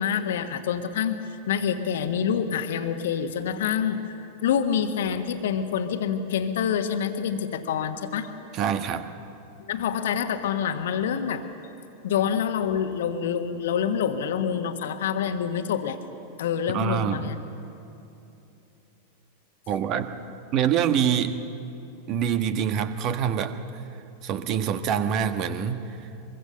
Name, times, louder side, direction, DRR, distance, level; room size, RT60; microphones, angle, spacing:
voice 1, 0.0-8.3 9.6-11.4 12.0-16.0 16.4-17.4, left 8 dB, 60° left, 8 dB, 1.5 m, -27 dB
voice 2, 8.5-9.1 16.7-17.3 19.7-20.1 20.5-21.4 22.1-23.6 24.2-26.0, right 8 dB, 35° right, 9 dB, 1.3 m, -25 dB
23.5 x 23.5 x 6.9 m, 2.9 s
figure-of-eight pair, 90°, 0 cm